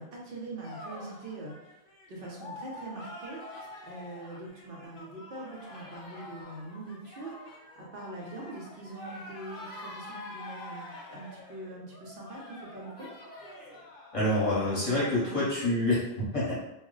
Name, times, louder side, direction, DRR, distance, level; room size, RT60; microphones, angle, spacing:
voice 1, 0.0-13.1 14.6-15.5, right 2 dB, 70° right, -3 dB, 0.8 m, -43 dB
sound 1, 0.6-14.7, left 1 dB, 60° left, 0.7 m, -46 dB
voice 2, 14.1-16.5, left 1 dB, 35° left, -8 dB, 0.9 m, -27 dB
2.3 x 2.0 x 3.7 m, 0.90 s
omnidirectional pair, 1.0 m